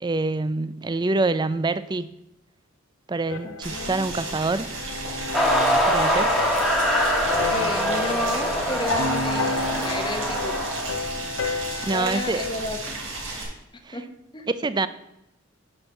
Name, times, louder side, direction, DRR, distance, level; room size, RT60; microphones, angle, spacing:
voice 1, 0.0-2.1 3.1-4.7 5.9-6.3 11.8-12.4 13.8-14.0 14.5-14.9, right 3 dB, 20° right, 0.4 m, -26 dB
sound 1, 3.3-12.7, left 2 dB, 65° left, 0.6 m, -31 dB
voice 2, 3.4-4.1 7.5-10.7 11.9-13.0 13.9-14.0 14.3-14.5, left 2 dB, 25° left, 0.9 m, -32 dB
Boiling, 3.6-13.4, right 2 dB, 75° right, 3.0 m, -34 dB
sound 2, 5.3-10.9, equal, ahead, 1.3 m, -24 dB
9.7 x 4.5 x 6.5 m
head